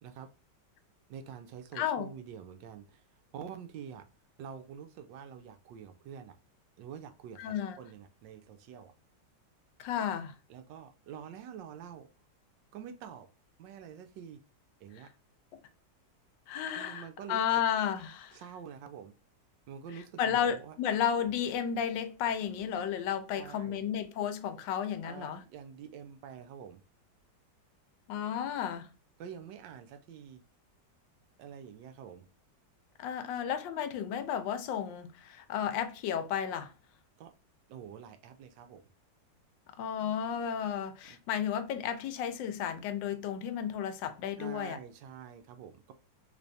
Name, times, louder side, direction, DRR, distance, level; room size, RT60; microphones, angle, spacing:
voice 1, 1.1-3.0 3.3-4.1 4.4-6.4 6.8-8.9 10.5-12.1 12.7-13.3 13.6-14.4 14.8-15.1 16.7-17.6 18.3-19.1 19.7-20.8 23.3-23.8 25.0-26.8 29.2-30.4 31.4-32.3 37.2-37.3 37.7-38.9 41.0-41.2 44.4-45.9, right 8 dB, 80° right, 1.2 m, -47 dB
voice 2, 1.7-2.1 7.4-7.8 9.8-10.4 15.5-15.6 16.5-18.4 20.2-25.4 28.1-28.9 33.0-36.7 39.8-44.8, left 9 dB, 80° left, 1.2 m, -33 dB
3.3 x 3.3 x 2.6 m
omnidirectional pair, 2.0 m